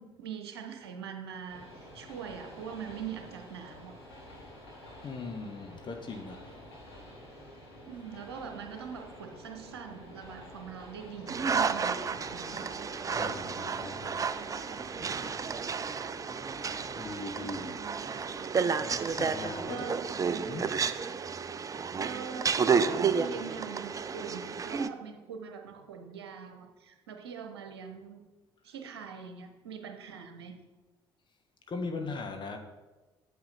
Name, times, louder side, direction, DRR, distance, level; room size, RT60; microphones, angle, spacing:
voice 1, 0.0-1.7 1.9-3.9 7.9-12.7 19.7-20.0 22.0-28.2 28.6-30.5, right 7 dB, 75° right, 5 dB, 1.1 m, -43 dB
Train, 1.4-20.6, left 1 dB, 80° left, 2.1 m, -50 dB
voice 2, 5.0-6.5 13.1-14.1 17.0-17.8 18.1-18.2 19.0-19.9 20.5-20.7 31.7-32.6, left 3 dB, 35° left, 4 dB, 1.3 m, -39 dB
sound 1, 11.3-24.9, right 5 dB, 25° right, 0.5 m, -31 dB
8.8 x 7.9 x 4.3 m, 1.2 s
figure-of-eight pair, 50°, 13 cm